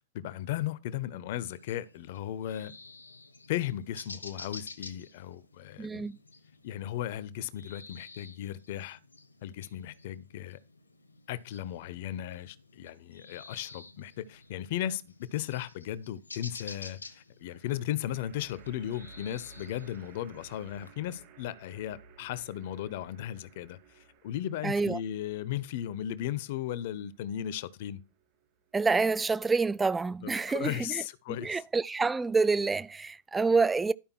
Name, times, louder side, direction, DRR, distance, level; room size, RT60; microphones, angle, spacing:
voice 1, 0.1-2.7 3.5-6.1 6.6-9.0 9.4-10.6 11.3-28.0 30.2-31.6, left 12 dB, 50° left, 0.7 m, -36 dB
sound 1, 1.5-20.9, left 3 dB, 80° left, 1.0 m, -51 dB
voice 2, 5.8-6.2 24.6-25.0 28.7-31.0 31.4-33.9, right 4 dB, 10° right, 0.4 m, -27 dB
sound 2, 14.3-14.9 17.4-28.8, right 5 dB, 45° right, 2.0 m, -57 dB
12.0 x 5.1 x 4.5 m
figure-of-eight pair, 90°, 0 cm